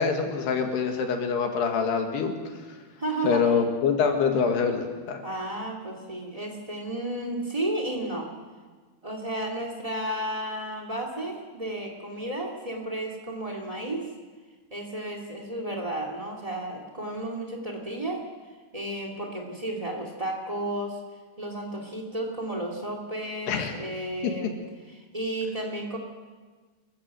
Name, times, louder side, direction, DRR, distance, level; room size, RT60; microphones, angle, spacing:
voice 1, 0.0-2.3 3.2-5.2 23.5-23.7, left 5 dB, 65° left, 4 dB, 3.6 m, -25 dB
voice 2, 3.0-3.4 5.2-8.3 9.0-14.1 14.7-18.2 18.7-21.0 21.4-24.6 24.8-26.0, right 1 dB, 70° right, 2 dB, 0.3 m, -32 dB
28.5 x 15.0 x 7.7 m, 1.4 s
omnidirectional pair, 5.4 m